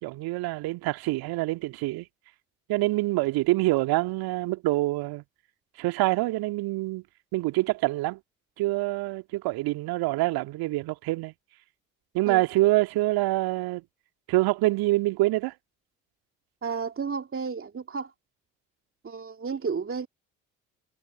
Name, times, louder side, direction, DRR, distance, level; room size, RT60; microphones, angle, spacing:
voice 1, 0.0-2.1 2.7-5.2 5.8-7.0 7.3-8.2 8.6-11.3 12.1-13.8 14.3-15.5, right 19 dB, 60° right, 2.2 m, -26 dB
voice 2, 16.6-18.1 19.0-20.1, right 5 dB, 30° right, 2.8 m, -32 dB
figure-of-eight pair, 50°, 42 cm